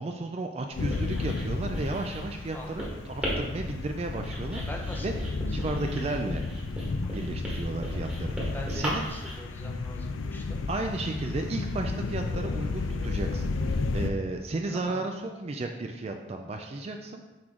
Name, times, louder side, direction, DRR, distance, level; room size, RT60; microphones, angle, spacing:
voice 1, 0.0-4.6 5.0-5.1 5.5-6.5 7.1-9.1 10.7-17.2, right 2 dB, 30° right, 4 dB, 0.3 m, -34 dB
Writing, 0.7-9.3, equal, 5° right, 1.4 m, -37 dB
sound 1, 0.8-14.1, left 3 dB, 85° left, 0.4 m, -33 dB
voice 2, 2.5-2.9 4.7-5.7 8.5-10.6 14.7-15.0, left 1 dB, 10° left, 1 dB, 0.6 m, -43 dB
6.0 x 4.6 x 3.7 m, 1.1 s
head